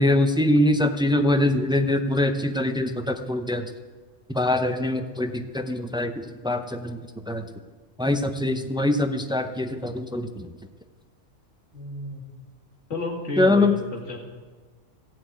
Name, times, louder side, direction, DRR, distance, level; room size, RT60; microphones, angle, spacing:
voice 1, 0.0-3.7 4.3-7.0 7.3-7.4 8.0-10.5 13.4-13.7, left 1 dB, 5° right, 7 dB, 0.4 m, -23 dB
voice 2, 5.0-5.4 8.3-8.8 11.7-12.3 12.9-14.2, left 2 dB, 65° left, 0 dB, 2.4 m, -33 dB
14.5 x 7.7 x 9.2 m, 1.4 s
omnidirectional pair, 1.4 m